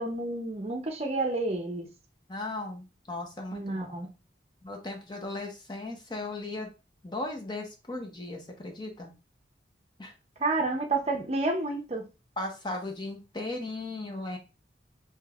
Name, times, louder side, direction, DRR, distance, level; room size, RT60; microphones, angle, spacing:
voice 1, 0.0-1.9 3.5-4.1 10.4-12.1, right 2 dB, 35° right, 0.6 m, -30 dB
voice 2, 2.3-4.0 4.6-6.7 7.0-9.1 10.0-10.1 12.4-14.4, left 2 dB, 25° left, 0.6 m, -37 dB
5.0 x 2.8 x 2.3 m
head